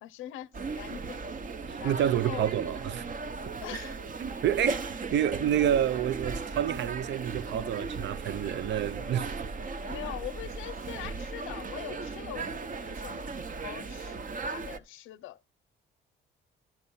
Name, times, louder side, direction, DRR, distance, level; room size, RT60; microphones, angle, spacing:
voice 1, 0.0-0.5 0.7-1.2 1.8-2.6 3.6-4.0 9.8-15.4, left 14 dB, 90° left, 0.6 m, -42 dB
sound 1, 0.5-14.8, right 4 dB, 40° right, 0.9 m, -37 dB
voice 2, 1.7-3.1 4.2-9.4, right 10 dB, 65° right, 0.6 m, -29 dB
11.5 x 5.5 x 5.5 m
cardioid pair, 90°, 20 cm